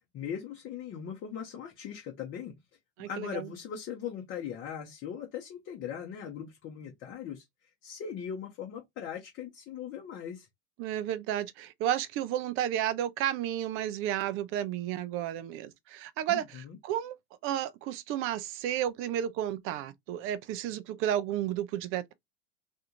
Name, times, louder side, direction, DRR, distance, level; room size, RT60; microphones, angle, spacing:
voice 1, 0.1-2.5 3.0-7.4 7.8-10.5 16.3-16.8, left 8 dB, 35° left, 0.8 m, -39 dB
voice 2, 3.0-3.5 10.8-17.2 17.4-22.1, right 11 dB, 35° right, 0.4 m, -32 dB
2.6 x 2.3 x 2.9 m
hypercardioid pair, 90°, 36 cm